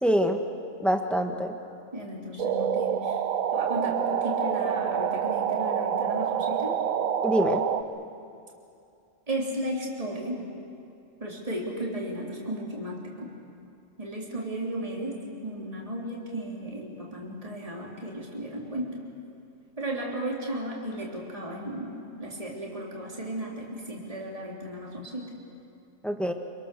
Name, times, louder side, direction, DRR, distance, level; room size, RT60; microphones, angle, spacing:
voice 1, 0.0-0.4 0.8-1.5 7.2-7.6 26.0-26.3, equal, ahead, 4 dB, 1.5 m, -24 dB
voice 2, 1.9-3.2 3.5-6.8 9.3-10.5 11.2-13.3 14.0-19.0 19.8-25.3, right 1 dB, 25° right, -3 dB, 3.4 m, -34 dB
sound 1, 2.4-7.8, right 8 dB, 80° right, 1.2 m, -27 dB
27.0 x 24.0 x 6.8 m, 2.5 s
omnidirectional pair, 1.4 m